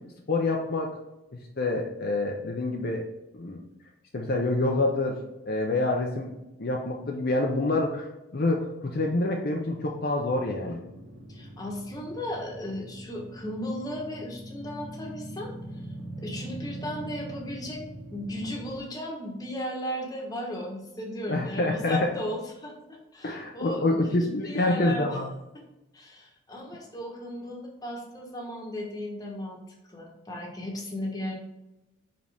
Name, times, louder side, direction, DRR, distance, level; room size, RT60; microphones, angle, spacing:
voice 1, 0.3-0.9 1.6-3.0 3.3-3.6 4.1-5.2 5.5-6.3 6.6-8.1 8.3-10.8 21.3-22.1 23.2-25.3, left 2 dB, 50° left, 0 dB, 0.6 m, -27 dB
sound 1, 10.2-18.8, right 1 dB, 50° right, 1.0 m, -42 dB
voice 2, 11.3-15.5 16.2-17.8 18.1-25.1 25.5-25.6 25.9-29.6 29.9-31.3, left 1 dB, 20° left, -1 dB, 1.2 m, -36 dB
5.3 x 5.2 x 3.4 m, 0.96 s
head